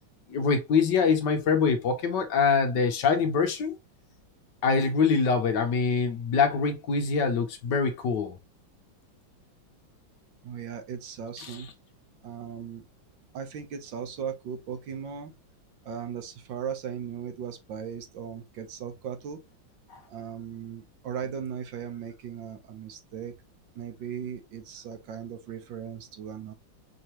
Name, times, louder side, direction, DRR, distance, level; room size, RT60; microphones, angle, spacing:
voice 1, 0.3-3.8 4.6-8.4 11.4-11.5, left 5 dB, 65° left, 1.4 m, -24 dB
voice 2, 10.4-11.7 12.2-12.9 13.3-15.3 15.8-19.4 20.1-23.3 23.7-26.5, right 7 dB, 70° right, 1.6 m, -37 dB
5.4 x 3.0 x 2.9 m
omnidirectional pair, 2.1 m